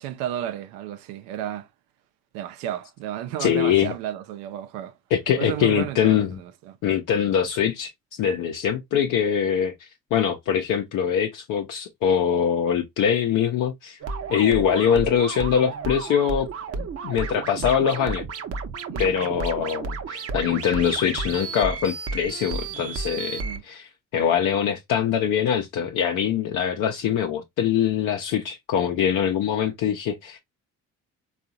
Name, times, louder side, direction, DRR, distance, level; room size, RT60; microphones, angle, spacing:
voice 1, 0.0-1.7 2.3-5.0 5.4-6.8 18.9-19.1 23.4-23.6, right 11 dB, 85° right, 0.6 m, -33 dB
voice 2, 3.4-3.9 5.1-6.4 6.8-7.9 8.2-14.0 14.3-16.5 16.8-18.3 19.0-30.4, left 8 dB, 65° left, 0.6 m, -23 dB
sound 1, 14.0-23.6, right 4 dB, 45° right, 0.7 m, -32 dB
3.7 x 2.4 x 2.6 m
supercardioid pair, 70°, 33 cm